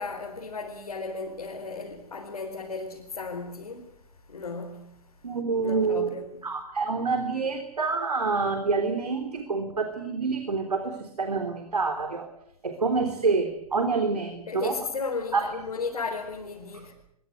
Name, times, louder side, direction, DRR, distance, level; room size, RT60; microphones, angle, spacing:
voice 1, 0.0-3.9 4.3-5.0 5.6-6.4 14.5-17.0, left 4 dB, 75° left, 4.6 m, -35 dB
voice 2, 5.2-6.1 6.4-12.3 12.6-14.8 15.3-15.5, right 4 dB, 80° right, 3.7 m, -27 dB
24.5 x 23.0 x 8.1 m
figure-of-eight pair, 120°, 20 cm